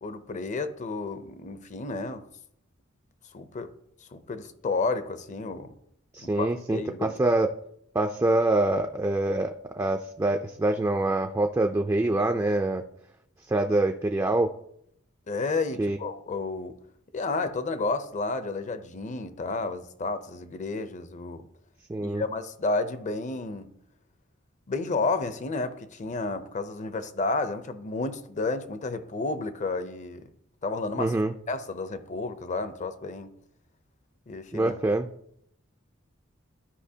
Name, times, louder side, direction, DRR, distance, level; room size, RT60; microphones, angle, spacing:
voice 1, 0.0-2.3 3.3-3.7 4.1-5.7 6.2-7.2 15.3-16.8 17.1-21.5 22.0-23.7 24.7-30.3 30.6-31.1 31.5-33.3 34.3-34.7, left 3 dB, 35° left, 0.5 m, -31 dB
voice 2, 6.1-7.5 7.9-12.8 13.5-14.5 15.8-16.0 21.9-22.2 31.0-31.3 34.5-35.1, right 2 dB, 15° right, 0.3 m, -25 dB
12.5 x 5.0 x 2.7 m
head